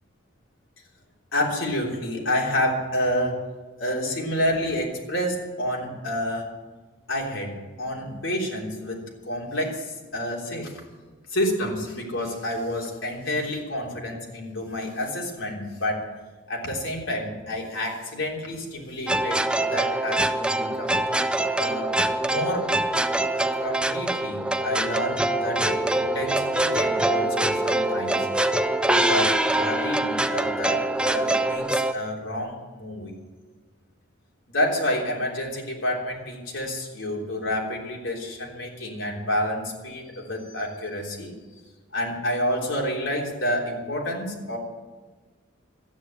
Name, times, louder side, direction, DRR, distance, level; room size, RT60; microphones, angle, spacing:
voice 1, 1.3-3.4 3.8-6.5 7.1-7.5 7.8-10.8 11.3-16.1 16.5-19.4 19.7-21.0 21.6-22.7 23.5-28.3 28.8-33.2 34.5-41.4 41.9-44.6, left 1 dB, 75° left, -1 dB, 3.4 m, -29 dB
sound 1, 19.1-31.9, right 1 dB, 5° right, 0.4 m, -24 dB
12.5 x 9.8 x 8.8 m, 1.3 s
head